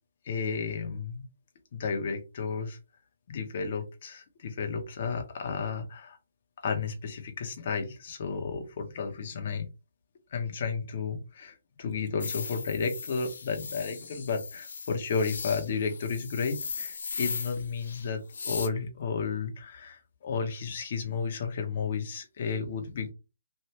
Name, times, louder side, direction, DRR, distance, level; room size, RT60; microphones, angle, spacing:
voice 1, 0.2-1.2 1.7-2.8 3.3-6.2 6.6-9.7 10.3-23.1, left 5 dB, 45° left, 4 dB, 1.0 m, -32 dB
sound 1, 12.2-18.7, left 5 dB, 65° left, 0.7 m, -38 dB
3.3 x 2.6 x 2.9 m, 0.28 s
hypercardioid pair, 160°, 0 cm